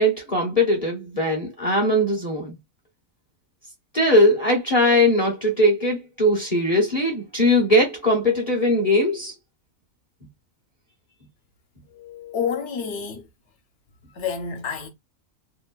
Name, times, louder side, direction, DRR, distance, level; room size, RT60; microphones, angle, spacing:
voice 1, 0.0-2.5 3.9-9.3, left 1 dB, 35° left, 0.7 m, -20 dB
voice 2, 11.9-13.3 14.1-14.9, left 6 dB, 60° left, 1.0 m, -29 dB
2.9 x 2.1 x 2.2 m
omnidirectional pair, 1.4 m